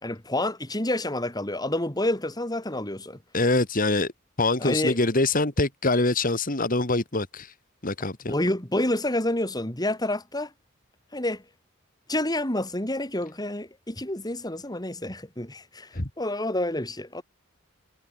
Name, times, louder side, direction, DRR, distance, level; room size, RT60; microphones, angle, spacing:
voice 1, 0.0-3.2 4.6-5.0 8.2-10.5 11.1-11.4 12.1-15.9 16.2-17.2, left 1 dB, 20° left, 3.4 m, -28 dB
voice 2, 3.3-4.1 4.4-7.5 7.8-8.3 15.9-16.1, left 2 dB, 40° left, 2.3 m, -24 dB
head